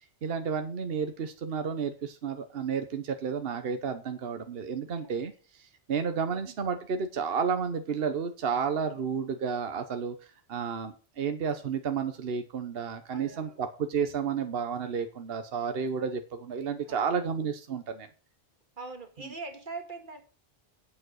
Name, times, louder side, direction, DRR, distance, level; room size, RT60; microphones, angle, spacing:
voice 1, 0.2-18.1, right 6 dB, 70° right, 8 dB, 1.1 m, -31 dB
voice 2, 13.1-13.6 16.8-17.1 18.8-20.2, right 3 dB, 55° right, 6 dB, 2.0 m, -43 dB
8.8 x 7.3 x 6.2 m, 0.37 s
omnidirectional pair, 1.0 m